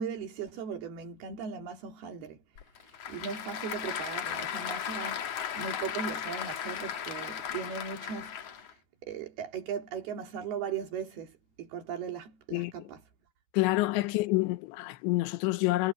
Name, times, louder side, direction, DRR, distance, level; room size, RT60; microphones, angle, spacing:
voice 1, 0.0-2.4 2.8-13.0, right 6 dB, 60° right, 4.8 m, -38 dB
Applause / Crowd, 2.6-8.7, left 8 dB, 60° left, 1.7 m, -36 dB
voice 2, 12.5-12.9 13.5-15.9, left 19 dB, 90° left, 3.2 m, -28 dB
omnidirectional pair, 5.1 m